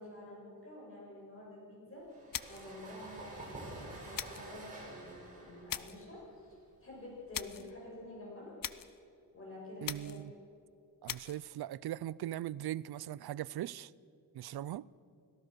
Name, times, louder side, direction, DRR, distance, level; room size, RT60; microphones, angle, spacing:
voice 1, 0.0-2.0 2.5-8.5 9.3-10.2, left 1 dB, 35° left, 7.8 m, -49 dB
sound 1, 2.1-7.6, right 2 dB, 20° right, 7.6 m, -49 dB
sound 2, 2.3-2.8 4.1-4.5 5.7-6.1 7.3-7.7 8.6-9.0 9.8-10.3 11.1-11.4, left 10 dB, 65° left, 0.7 m, -41 dB
voice 2, 9.8-10.3 11.0-13.9 14.3-14.9, right 13 dB, 90° right, 0.5 m, -40 dB
29.5 x 18.0 x 6.3 m
wide cardioid pair, 135°, 37 cm